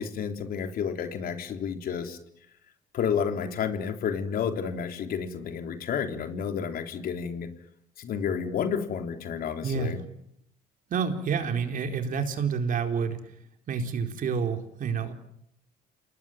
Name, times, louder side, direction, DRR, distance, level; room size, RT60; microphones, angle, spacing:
voice 1, 0.0-2.2 2.9-7.5 8.0-10.0, left 7 dB, 60° left, 6 dB, 3.7 m, -30 dB
voice 2, 9.6-10.0 10.9-13.2 13.7-15.1, right 6 dB, 55° right, 5 dB, 4.2 m, -28 dB
28.5 x 20.0 x 9.3 m, 0.74 s
cardioid pair, 110°, 17 cm